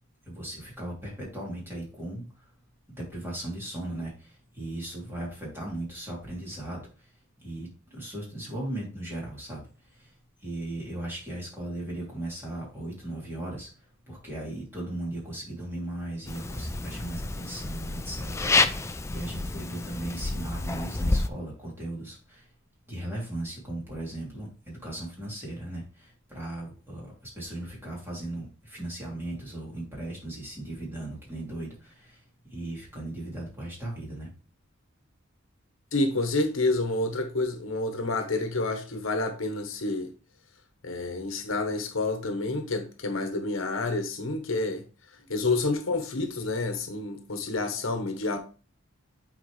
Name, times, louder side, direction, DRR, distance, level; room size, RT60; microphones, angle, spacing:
voice 1, 0.2-2.5 2.9-7.1 7.4-10.1 10.4-22.5 22.9-32.2 32.5-34.3 45.2-45.4, right 1 dB, 10° right, 3.1 m, -37 dB
sound 1, 16.3-21.3, left 3 dB, 15° left, 0.4 m, -29 dB
voice 2, 35.9-40.1 40.8-44.8 45.3-48.4, left 2 dB, 70° left, 1.1 m, -29 dB
8.8 x 4.5 x 3.2 m
head